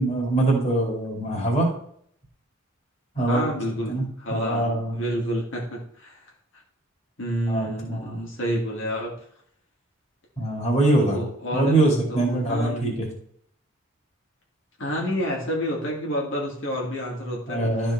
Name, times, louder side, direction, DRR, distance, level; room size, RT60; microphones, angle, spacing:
voice 1, 0.0-1.7 3.1-3.4 3.9-5.0 7.5-8.2 10.4-11.2 11.5-13.1 17.5-17.9, right 2 dB, 30° left, -2 dB, 2.7 m, -23 dB
voice 2, 3.2-3.9 4.2-4.7 4.9-6.3 7.2-9.1 10.9-12.9 14.8-17.6, equal, 65° left, -3 dB, 2.3 m, -29 dB
13.0 x 4.5 x 4.4 m, 0.63 s
head